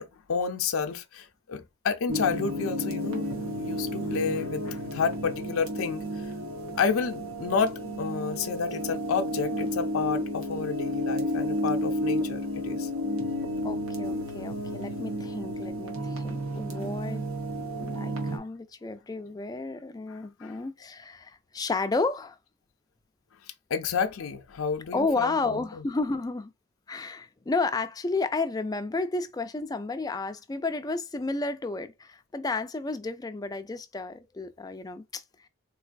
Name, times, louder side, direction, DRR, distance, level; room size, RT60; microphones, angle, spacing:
voice 1, 0.0-6.3 6.8-12.9 20.1-20.6 23.7-25.8, left 5 dB, 75° left, 0.5 m, -30 dB
sound 1, 2.1-18.4, equal, 85° right, 1.1 m, -32 dB
voice 2, 13.6-17.3 17.9-22.4 24.9-26.5 26.9-35.5, left 3 dB, 15° left, 0.3 m, -32 dB
3.9 x 3.1 x 2.5 m
head